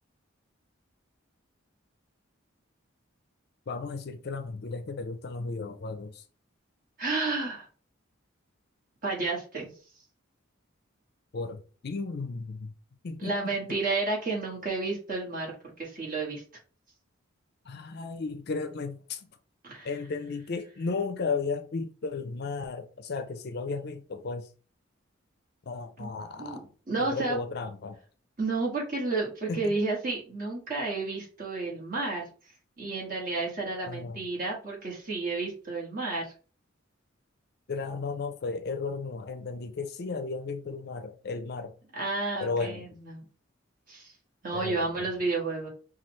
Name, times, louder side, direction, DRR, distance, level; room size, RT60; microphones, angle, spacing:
voice 1, 3.7-6.2 11.3-12.7 13.0-13.5 17.6-19.3 19.8-24.5 25.7-26.7 27.0-28.0 29.5-29.8 33.9-34.3 37.7-41.7 42.4-42.9 44.5-45.1, left 4 dB, 50° left, 0.4 m, -34 dB
voice 2, 7.0-7.7 9.0-9.7 13.2-15.5 15.8-16.4 19.6-19.9 26.0-26.1 26.4-27.4 28.4-32.3 32.8-36.3 41.9-43.2 43.9-44.1 44.4-45.7, right 3 dB, 40° right, 1.5 m, -31 dB
5.5 x 2.4 x 3.1 m
head